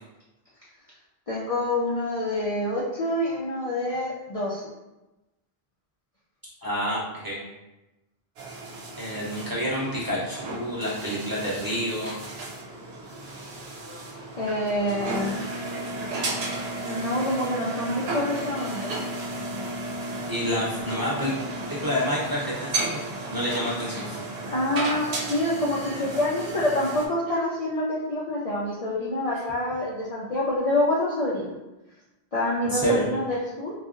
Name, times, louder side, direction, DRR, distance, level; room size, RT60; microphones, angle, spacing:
voice 1, 1.3-4.7 14.4-15.4 16.8-19.0 24.5-31.5 32.3-33.7, left 1 dB, 50° left, -6 dB, 0.4 m, -27 dB
voice 2, 6.6-7.4 8.9-12.2 20.3-21.3 21.7-23.0 23.2-24.2 32.6-33.0, equal, 25° right, -8 dB, 0.7 m, -28 dB
sound 1, 8.4-27.1, right 2 dB, 80° right, 0.9 m, -34 dB
3.8 x 2.4 x 2.4 m, 1.0 s
omnidirectional pair, 1.1 m